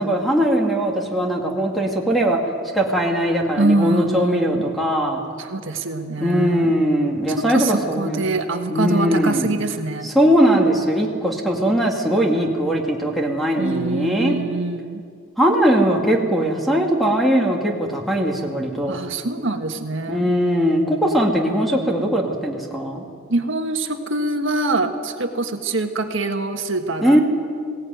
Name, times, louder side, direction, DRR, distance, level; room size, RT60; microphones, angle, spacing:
voice 1, 0.0-2.4 2.7-5.2 6.2-8.2 8.7-9.5 10.0-14.4 15.4-19.0 20.1-23.0 27.0-27.2, equal, ahead, 0 dB, 2.2 m, -20 dB
voice 2, 3.6-4.7 5.4-6.7 7.4-10.1 13.6-15.0 18.9-20.3 23.3-27.2, right 2 dB, 65° right, 5 dB, 1.6 m, -24 dB
20.0 x 17.5 x 9.3 m, 2.2 s
head